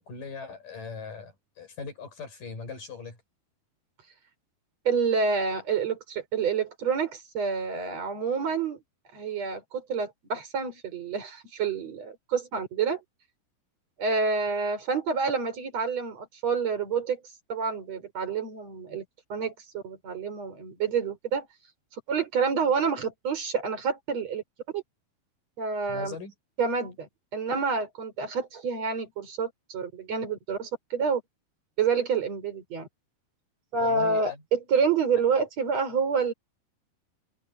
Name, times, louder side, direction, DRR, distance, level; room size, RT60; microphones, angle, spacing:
voice 1, 0.0-3.2 25.9-26.3 33.7-34.4, left 4 dB, 50° left, 8.5 m, -40 dB
voice 2, 4.9-8.8 9.1-13.0 14.0-17.2 17.5-19.0 19.3-21.5 22.1-24.4 24.7-24.8 25.6-26.2 26.6-31.2 31.8-32.9 33.7-36.3, right 5 dB, 40° right, 6.2 m, -28 dB
omnidirectional pair, 4.7 m